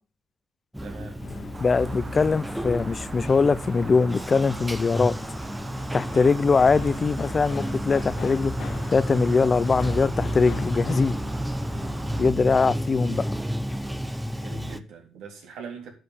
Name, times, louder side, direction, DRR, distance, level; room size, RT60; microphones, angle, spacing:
Bathtub (filling or washing), 0.7-14.8, equal, 5° right, 0.8 m, -31 dB
voice 1, 0.8-1.2 5.9-6.4 14.4-15.9, right 4 dB, 85° right, 3.6 m, -41 dB
sound 1, 1.2-12.3, left 6 dB, 60° left, 1.8 m, -42 dB
sound 2, 1.5-12.3, right 3 dB, 30° right, 1.1 m, -43 dB
voice 2, 1.6-5.2 5.9-8.5 8.9-11.2 12.2-13.2, left 4 dB, 35° left, 0.6 m, -22 dB
10.0 x 5.1 x 8.1 m
cardioid pair, 90°, 0 cm